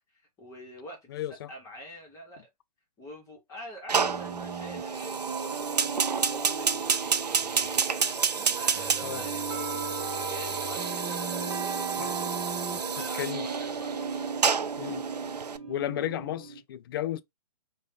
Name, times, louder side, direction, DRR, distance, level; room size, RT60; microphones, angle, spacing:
voice 1, 0.1-1.1 1.5-2.5 3.0-7.9 8.3-14.0, equal, 15° left, 1.4 m, -46 dB
voice 2, 1.1-1.5 9.0-9.2 12.0-12.1 13.0-13.5 14.8-15.1 15.7-17.2, left 12 dB, 35° left, 0.4 m, -33 dB
sound 1, 3.9-16.6, right 5 dB, 40° right, 0.8 m, -37 dB
Fire, 3.9-15.6, right 6 dB, 85° right, 0.4 m, -30 dB
sound 2, 4.9-16.5, left 4 dB, 5° right, 1.7 m, -53 dB
4.9 x 2.4 x 2.4 m
figure-of-eight pair, 125°, 20 cm